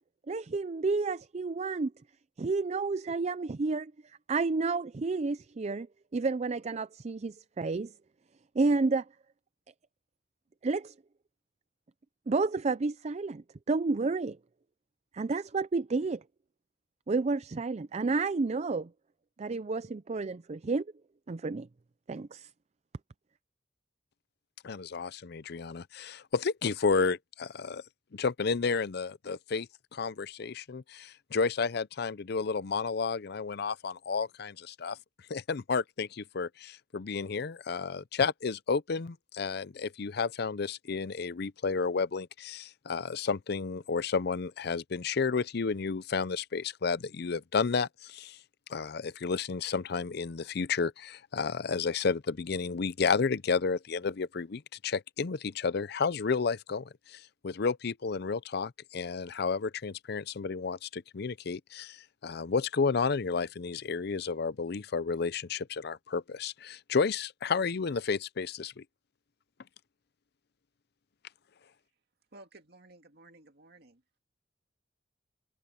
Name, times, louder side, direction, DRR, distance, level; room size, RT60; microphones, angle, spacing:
voice 1, 0.3-1.9 2.4-3.9 4.3-5.9 6.1-7.9 8.6-9.1 10.6-10.9 12.3-14.4 15.1-16.2 17.1-18.9 19.4-20.9 21.3-21.7 22.1-22.5, right 3 dB, 40° right, 0.4 m, -30 dB
voice 2, 24.6-27.8 28.1-35.0 35.3-48.4 48.7-68.8, left 5 dB, 60° left, 0.6 m, -31 dB
voice 3, 72.3-74.0, right 2 dB, 60° right, 2.4 m, -55 dB
head